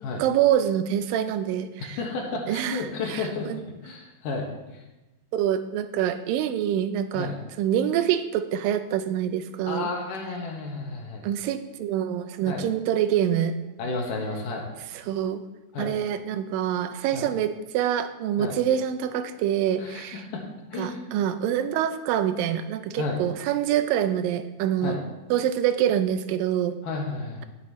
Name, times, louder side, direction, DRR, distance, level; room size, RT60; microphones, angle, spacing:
voice 1, 0.2-2.0 2.5-2.8 3.1-3.6 5.3-7.3 7.6-9.9 11.2-13.5 15.1-15.4 15.8-20.2 20.8-25.0 25.3-26.8, right 10 dB, 85° right, 10 dB, 2.4 m, -25 dB
voice 2, 1.8-3.5 3.8-4.8 7.1-7.4 9.7-11.3 12.5-12.6 13.8-14.7 15.7-15.9 17.1-17.3 18.4-18.6 19.8-20.4 20.7-21.1 23.0-23.2 24.8-25.0 26.8-27.4, left 3 dB, 70° left, 0 dB, 2.9 m, -32 dB
17.5 x 7.4 x 3.1 m, 1.0 s
omnidirectional pair, 4.0 m